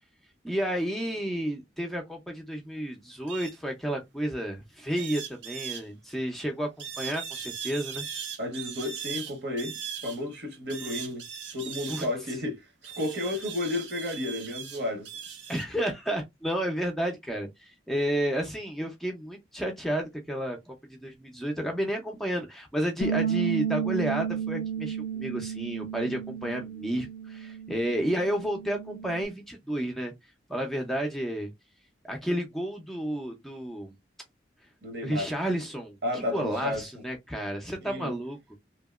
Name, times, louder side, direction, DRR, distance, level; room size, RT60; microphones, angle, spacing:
voice 1, 0.4-8.0 11.9-12.0 15.5-20.7 21.0-30.1 30.5-31.5 32.0-33.9 35.0-38.4, equal, ahead, 0.5 m, -31 dB
sound 1, 3.3-3.6 5.0-5.8 6.8-10.2 10.7-12.1 12.8-15.6, right 8 dB, 80° right, 0.8 m, -39 dB
voice 2, 8.4-11.3 11.5-15.1 34.8-35.3 36.0-36.9 37.8-38.1, left 1 dB, 60° right, 1.1 m, -32 dB
Bass guitar, 23.0-29.3, right 7 dB, 75° left, 0.4 m, -32 dB
2.8 x 2.8 x 2.3 m
head